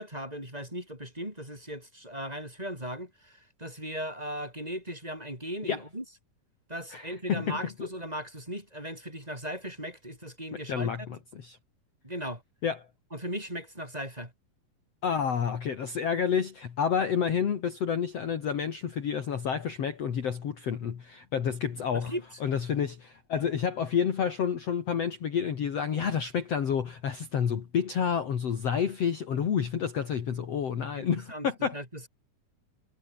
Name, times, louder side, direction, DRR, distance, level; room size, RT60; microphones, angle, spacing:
voice 1, 0.0-6.0 6.7-11.1 12.0-12.4 13.1-14.3 21.9-22.2 31.0-31.5 31.7-32.1, equal, 10° right, 7.9 m, -38 dB
voice 2, 6.9-7.9 10.5-11.6 12.6-12.9 15.0-22.1 22.4-31.8, left 7 dB, 50° left, 2.8 m, -29 dB
omnidirectional pair, 4.0 m